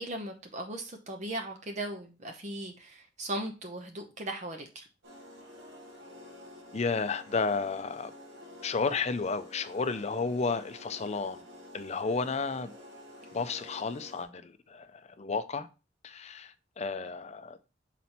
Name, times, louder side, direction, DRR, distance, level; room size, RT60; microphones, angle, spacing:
voice 1, 0.0-4.8, right 1 dB, 40° right, 0.8 m, -38 dB
sound 1, 5.0-14.2, left 1 dB, 65° right, 2.0 m, -50 dB
voice 2, 6.7-8.1 8.6-11.4 11.7-12.7 13.3-15.7 16.0-17.6, left 4 dB, 35° left, 0.5 m, -32 dB
6.1 x 4.1 x 4.2 m
head